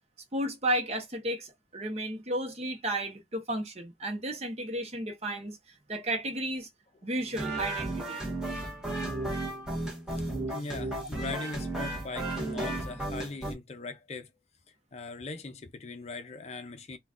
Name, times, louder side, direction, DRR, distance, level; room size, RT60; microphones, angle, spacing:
voice 1, 0.3-5.6 5.9-6.7 7.0-8.2 11.0-11.1, right 1 dB, 35° right, 0.9 m, -33 dB
sound 1, 7.3-13.5, right 2 dB, 5° right, 1.0 m, -34 dB
voice 2, 10.5-14.3 14.9-17.0, left 3 dB, 35° left, 0.5 m, -40 dB
3.9 x 2.3 x 2.4 m
head